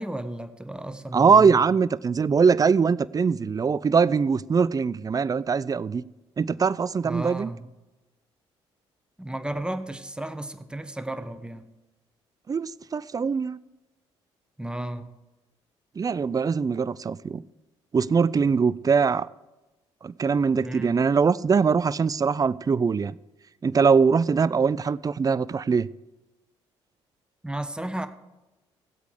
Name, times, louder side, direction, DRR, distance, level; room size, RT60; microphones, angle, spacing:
voice 1, 0.0-1.6 7.0-7.7 9.2-11.6 14.6-15.1 20.6-21.0 27.4-28.1, right 1 dB, 5° right, 1.1 m, -33 dB
voice 2, 1.1-6.0 6.4-7.5 12.5-13.6 16.0-17.4 17.9-19.3 20.0-23.2 23.6-25.9, right 5 dB, 25° right, 0.4 m, -22 dB
16.5 x 8.1 x 4.9 m
hypercardioid pair, 45°, 14 cm